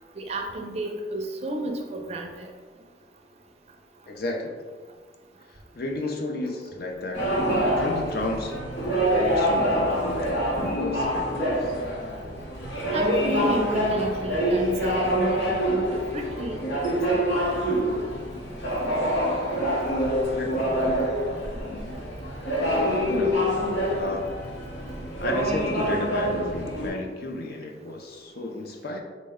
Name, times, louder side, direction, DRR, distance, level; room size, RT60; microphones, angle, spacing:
voice 1, 0.2-2.5 12.9-15.8 16.1-17.4, right 1 dB, 35° right, 2 dB, 0.4 m, -31 dB
voice 2, 4.1-4.6 5.5-7.3 7.6-8.7 9.0-10.4 10.7-11.8 19.2-19.4 20.3-20.9 23.1-23.5 23.9-24.4 25.2-29.0, left 2 dB, 60° left, 1 dB, 0.5 m, -33 dB
sound 1, 7.1-26.9, equal, 80° left, 0.9 m, -26 dB
4.0 x 2.1 x 3.5 m, 1.5 s
head